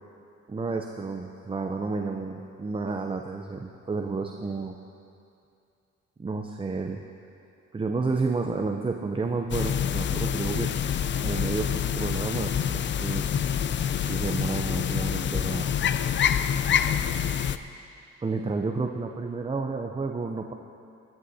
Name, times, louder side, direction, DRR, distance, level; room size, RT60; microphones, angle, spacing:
voice 1, 0.5-4.7 6.2-7.0 7.7-10.7 11.2-13.2 14.1-15.7 18.2-20.5, right 4 dB, 20° right, 3 dB, 0.6 m, -31 dB
sound 1, 9.5-17.6, left 8 dB, 40° left, 0.4 m, -26 dB
18.0 x 11.5 x 2.8 m, 2.6 s
cardioid pair, 90°, 30 cm